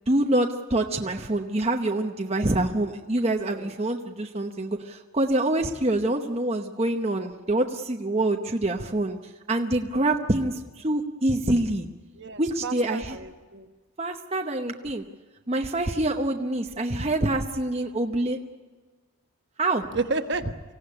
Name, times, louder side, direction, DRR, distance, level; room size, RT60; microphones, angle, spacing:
voice 1, 0.1-9.2 9.5-11.9 12.4-13.2 14.0-15.0 15.5-18.4 19.6-19.9, right 1 dB, 30° right, 3 dB, 0.9 m, -26 dB
voice 2, 12.2-13.7 19.9-20.4, right 3 dB, 55° right, 7 dB, 1.3 m, -31 dB
25.0 x 16.5 x 9.8 m, 1.3 s
head